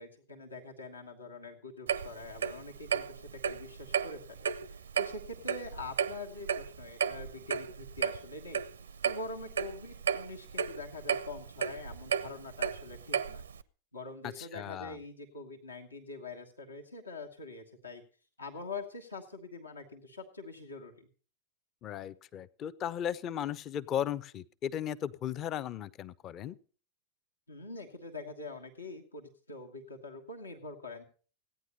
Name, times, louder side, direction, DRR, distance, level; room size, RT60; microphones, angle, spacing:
voice 1, 0.0-8.6 9.0-13.4 13.9-18.0 18.4-21.1 27.5-31.0, left 3 dB, 80° left, 1 dB, 1.4 m, -44 dB
Clock, 1.9-13.6, right 7 dB, 70° right, 0.5 m, -34 dB
voice 2, 14.2-14.9 21.8-26.6, left 10 dB, 30° left, 16 dB, 0.6 m, -36 dB
16.0 x 9.6 x 5.3 m, 0.41 s
figure-of-eight pair, 90°, 0 cm